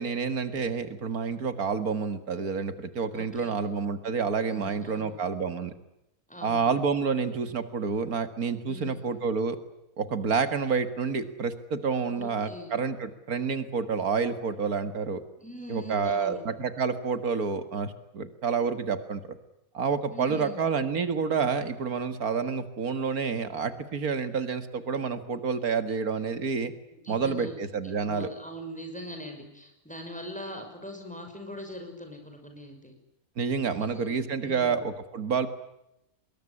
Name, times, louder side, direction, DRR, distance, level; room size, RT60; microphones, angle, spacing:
voice 1, 0.0-5.7 6.4-9.6 10.0-15.2 15.7-19.2 19.7-26.7 27.1-28.3 33.4-35.5, right 5 dB, 85° right, 11 dB, 2.3 m, -29 dB
voice 2, 3.1-3.6 4.5-5.2 6.3-6.7 8.7-9.0 12.1-12.7 15.4-16.4 20.1-20.6 26.9-32.9 33.8-34.8, equal, 5° left, 4 dB, 6.3 m, -42 dB
25.0 x 21.5 x 9.9 m, 0.85 s
omnidirectional pair, 1.5 m